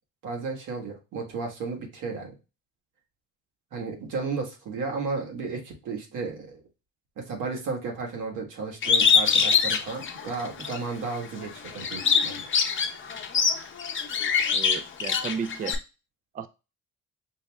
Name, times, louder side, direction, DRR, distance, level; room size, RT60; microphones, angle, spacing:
voice 1, 0.2-2.3 3.7-6.6 7.2-12.5, right 4 dB, 85° right, 1 dB, 1.5 m, -33 dB
Bird, 8.8-10.8 11.2-15.7, left 6 dB, 40° left, 0.7 m, -23 dB
voice 2, 14.5-15.8 16.3-16.5, right 6 dB, 30° right, 10 dB, 0.3 m, -33 dB
5.2 x 2.0 x 3.4 m, 0.29 s
cardioid pair, 90°, 30 cm